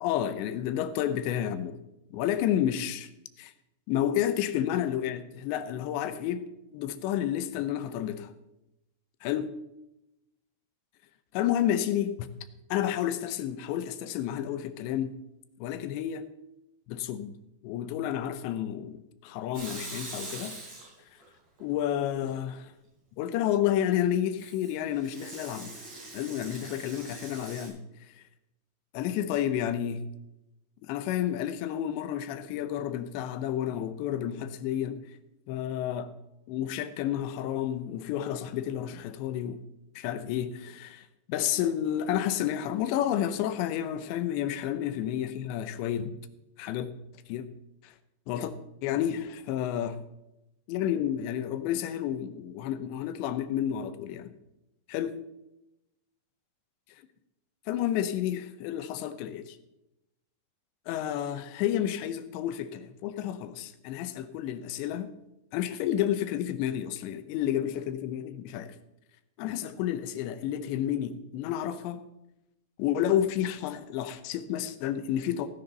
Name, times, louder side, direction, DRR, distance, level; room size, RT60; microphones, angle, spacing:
voice 1, 0.0-1.8 2.1-3.1 3.4-3.5 3.9-6.4 6.7-8.3 9.2-9.5 11.3-12.1 12.7-15.2 15.6-16.2 16.9-17.4 17.6-20.6 21.6-22.7 23.2-25.7 26.1-27.8 28.2-28.3 28.9-30.0 30.8-35.0 35.5-36.1 36.5-39.6 40.0-46.2 46.6-46.9 47.3-47.5 47.8-47.9 48.3-48.5 48.8-50.0 50.7-54.3 54.9-55.2 57.7-59.6 60.9-65.1 65.5-68.8 69.4-72.0 72.8-75.5, left 10 dB, 85° left, 11 dB, 3.1 m, -30 dB
Water tap faucet / Sink (filling or washing) / Liquid, 19.5-21.2 21.6-22.3 24.4-27.7, right 2 dB, 40° right, 6.5 m, -43 dB
16.5 x 10.5 x 4.0 m, 0.91 s
omnidirectional pair, 5.0 m